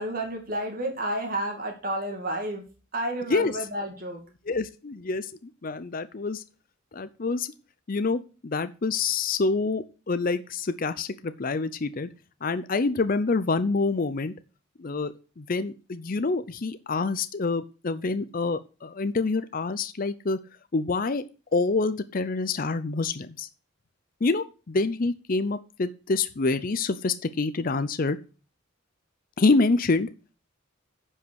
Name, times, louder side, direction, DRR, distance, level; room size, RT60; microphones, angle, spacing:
voice 1, 0.0-2.6 2.9-4.2, right 1 dB, 45° right, 2 dB, 2.5 m, -31 dB
voice 2, 4.5-6.4 6.9-7.5 7.9-12.1 12.4-14.3 14.8-20.4 20.7-21.2 21.5-23.5 24.2-28.2 29.4-30.1, left 3 dB, 45° left, 12 dB, 0.5 m, -27 dB
10.0 x 5.6 x 6.3 m, 0.35 s
head